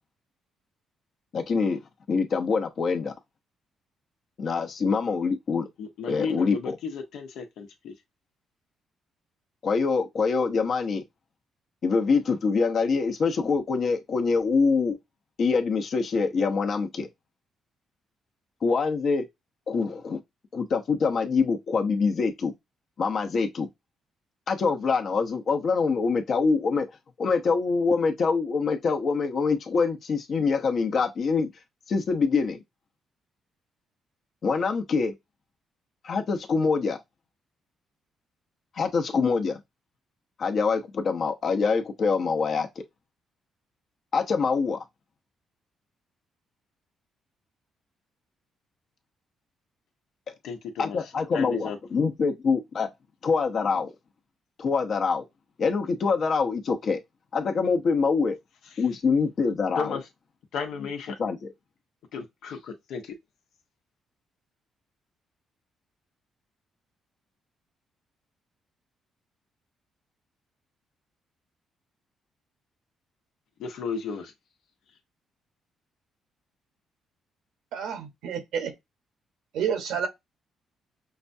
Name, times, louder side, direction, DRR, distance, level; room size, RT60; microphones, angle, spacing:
voice 1, 1.3-1.8 2.1-3.1 4.4-5.7 6.0-6.8 9.6-11.0 11.8-15.0 15.4-17.1 18.6-19.2 19.7-20.2 20.5-22.5 23.0-23.7 24.5-26.9 27.2-31.5 31.9-32.6 34.4-35.1 36.0-37.0 38.7-39.6 40.4-42.8 44.1-44.8 50.8-52.9 53.2-53.9 54.6-55.3 55.6-57.0 57.3-58.4 58.8-60.0 61.2-61.5, left 4 dB, 55° left, 0.9 m, -25 dB
voice 2, 5.8-7.9 50.4-51.0 51.3-51.8 59.8-60.0 60.5-61.1 62.1-63.1 73.6-74.3, left 5 dB, 80° left, 1.0 m, -34 dB
voice 3, 77.7-78.7 79.5-80.1, right 7 dB, 85° right, 1.1 m, -29 dB
5.8 x 2.3 x 2.7 m
cardioid pair, 90°, 0 cm